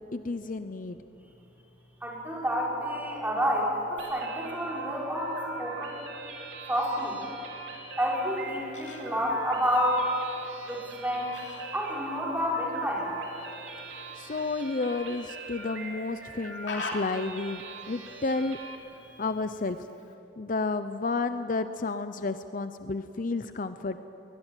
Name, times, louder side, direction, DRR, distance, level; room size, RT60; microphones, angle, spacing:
voice 1, 0.1-1.0 14.2-17.6 17.9-18.6 19.2-19.8 20.4-24.0, left 3 dB, 45° left, 10 dB, 0.7 m, -31 dB
voice 2, 2.0-6.0 6.7-7.2 8.0-10.0 10.7-11.3 11.7-13.1, equal, 10° right, -3 dB, 5.3 m, -29 dB
sound 1, 4.0-18.8, right 4 dB, 90° right, 3.2 m, -42 dB
Fowl, 8.2-20.1, left 3 dB, 70° left, 3.3 m, -46 dB
22.5 x 20.5 x 9.1 m, 2.9 s
head